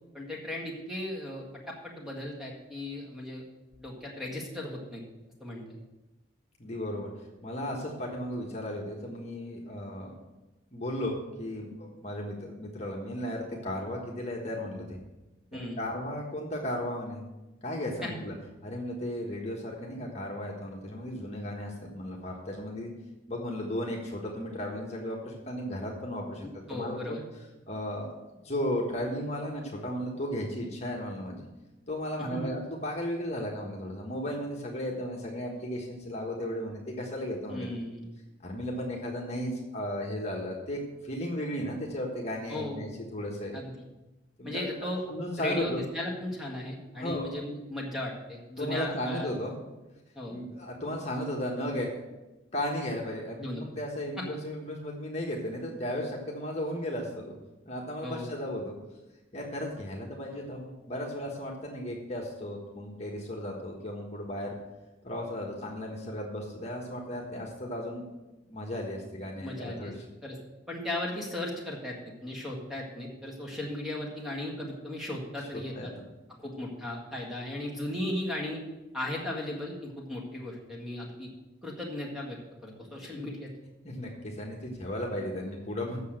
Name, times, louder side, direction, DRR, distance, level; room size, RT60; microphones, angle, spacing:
voice 1, 0.1-3.4 3.8-5.0 5.4-5.8 15.5-15.8 18.0-18.2 26.4-27.2 32.2-32.5 37.5-38.1 42.5-43.1 43.5-43.7 44.4-45.0 45.4-49.3 50.2-50.4 53.4-53.6 58.0-58.3 69.4-69.9 70.2-70.4 70.7-72.0 72.2-75.9 76.4-78.6 78.9-81.3 81.6-83.5, left 1 dB, ahead, -3 dB, 1.8 m, -36 dB
voice 2, 6.6-7.1 7.4-10.1 10.7-15.0 15.5-17.2 17.6-18.3 18.6-22.9 23.3-27.2 27.7-28.1 28.4-31.4 31.9-37.7 38.4-43.6 44.4-44.6 45.1-45.8 47.0-47.3 48.6-49.6 50.3-52.0 52.5-57.3 57.6-58.7 59.3-64.6 65.0-68.1 68.5-70.0 75.5-76.0 83.8-86.0, equal, 35° left, -1 dB, 1.4 m, -35 dB
8.2 x 6.7 x 7.7 m, 1.1 s
head